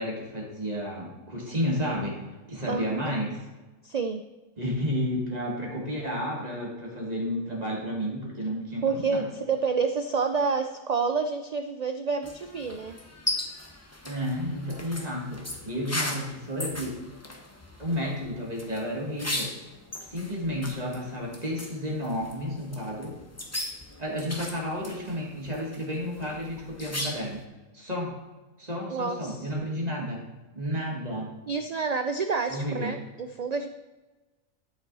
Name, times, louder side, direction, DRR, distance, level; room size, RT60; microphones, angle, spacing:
voice 1, 0.0-2.1 2.5-3.4 4.6-9.2 14.0-17.0 17.8-19.5 20.0-23.1 24.0-27.4 27.7-28.1 28.6-30.2 30.5-31.3 32.5-32.9, equal, 30° right, -3 dB, 2.7 m, -31 dB
voice 2, 3.8-4.2 8.8-13.0 28.9-29.5 31.5-33.7, right 5 dB, 65° right, 7 dB, 0.4 m, -28 dB
sound 1, 12.2-27.4, left 1 dB, 15° left, 0.8 m, -38 dB
13.0 x 5.4 x 4.0 m, 1.2 s
omnidirectional pair, 1.3 m